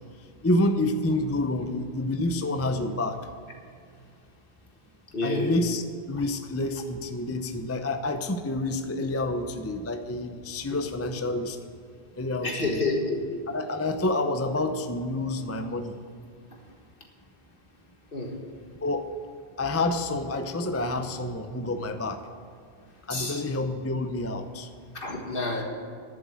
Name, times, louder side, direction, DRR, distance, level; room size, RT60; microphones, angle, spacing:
voice 1, 0.4-3.3 5.2-11.6 12.2-12.8 13.5-16.0 18.8-19.1 19.6-22.3 23.1-24.7, left 2 dB, 20° left, 7 dB, 0.5 m, -28 dB
voice 2, 5.1-5.5 12.4-13.2 18.1-18.3 23.1-23.4 25.0-25.6, left 2 dB, 60° left, 2 dB, 1.8 m, -28 dB
11.0 x 7.2 x 8.5 m, 2.2 s
omnidirectional pair, 1.0 m